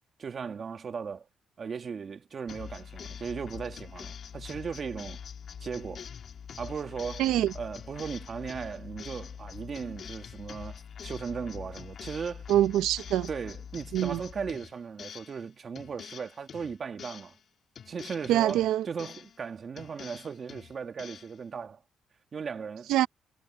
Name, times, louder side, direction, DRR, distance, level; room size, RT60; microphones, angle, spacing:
voice 1, 0.2-1.3 1.6-5.2 5.6-6.1 6.6-7.3 7.5-12.5 13.3-17.3 17.9-21.8 22.3-22.9, right 6 dB, 45° right, 2.0 m, -37 dB
sound 1, 2.5-15.5 15.8-17.4 17.8-19.4 19.8-21.4, left 7 dB, 55° left, 2.0 m, -44 dB
voice 2, 7.2-7.5 12.5-13.3 13.9-14.2 18.3-18.9 22.9-23.1, right 13 dB, 90° right, 0.8 m, -24 dB
cardioid pair, 90°, 0 cm